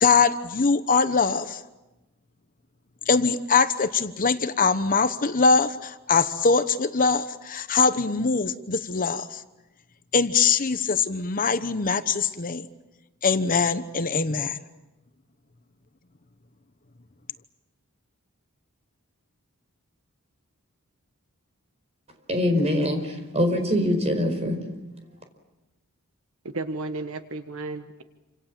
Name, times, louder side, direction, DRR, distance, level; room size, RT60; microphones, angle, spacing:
voice 1, 0.0-1.6 3.1-9.4 10.1-12.7 13.2-14.6, left 4 dB, 40° left, 1.0 m, -22 dB
voice 2, 22.3-24.6, left 1 dB, 30° right, 4.8 m, -23 dB
voice 3, 26.5-28.0, right 2 dB, 70° right, 1.4 m, -33 dB
28.5 x 26.5 x 7.5 m
head